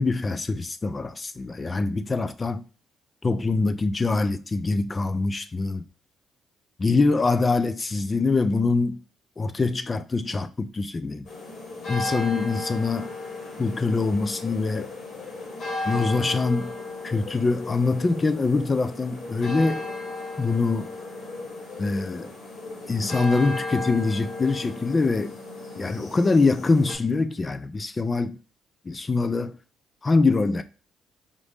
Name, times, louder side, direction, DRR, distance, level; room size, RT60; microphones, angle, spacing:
voice 1, 0.0-2.6 3.2-5.8 6.8-9.0 9.4-11.3 11.9-13.1 13.6-14.9 15.8-16.7 17.0-19.9 20.4-20.9 21.8-22.3 22.9-25.4 25.8-28.4 28.9-29.6 30.0-30.6, left 3 dB, 30° left, 0.4 m, -24 dB
sound 1, 11.2-26.9, left 3 dB, 60° left, 1.9 m, -35 dB
5.1 x 2.5 x 3.4 m
cardioid pair, 90°, 0 cm